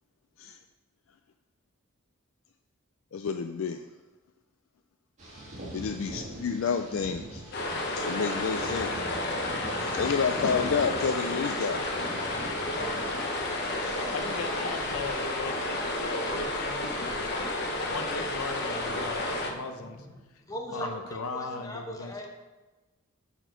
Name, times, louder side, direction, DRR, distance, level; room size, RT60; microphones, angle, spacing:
voice 1, 3.1-3.8 5.7-7.4 7.9-9.0 9.7-11.9 13.8-14.0, left 6 dB, 65° left, 6 dB, 0.4 m, -30 dB
sound 1, 5.2-15.2, right 1 dB, 35° right, 2.2 m, -43 dB
sound 2, 7.5-19.5, left 2 dB, 50° left, 1.0 m, -31 dB
voice 2, 14.1-17.3 17.8-20.1 20.7-22.1, left 3 dB, 80° left, 6 dB, 0.8 m, -38 dB
voice 3, 19.4-20.1 20.5-22.3, left 1 dB, 15° left, 1 dB, 0.9 m, -39 dB
9.0 x 4.4 x 5.1 m, 1.2 s
head